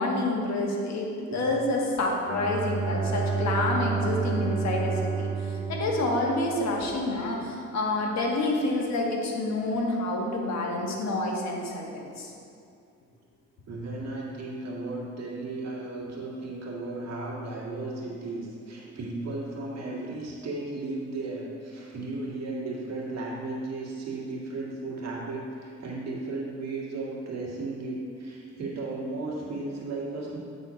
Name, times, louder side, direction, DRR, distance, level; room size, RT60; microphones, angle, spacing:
voice 1, 0.0-5.3 5.7-12.3, left 2 dB, 60° left, -1 dB, 1.4 m, -28 dB
Bowed string instrument, 2.2-6.9, right 5 dB, 5° right, 1.7 m, -30 dB
voice 2, 13.7-30.4, right 2 dB, 60° right, -4 dB, 1.9 m, -35 dB
8.2 x 4.2 x 5.1 m, 2.5 s
cardioid pair, 90°, 30 cm